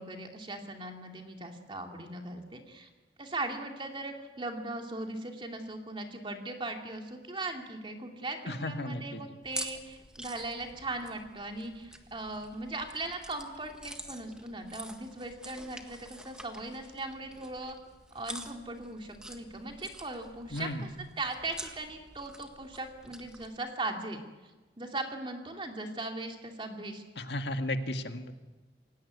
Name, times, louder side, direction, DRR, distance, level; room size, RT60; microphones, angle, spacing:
voice 1, 0.0-2.9 3.2-17.8 18.1-20.7 21.2-24.2 24.8-27.0, right 2 dB, 30° right, 3 dB, 2.6 m, -39 dB
voice 2, 8.5-9.3 20.5-20.9 27.2-28.3, left 1 dB, 70° left, 7 dB, 1.9 m, -34 dB
sound 1, 9.4-23.5, right 1 dB, 5° right, 1.7 m, -47 dB
28.0 x 17.0 x 9.5 m, 1.2 s
head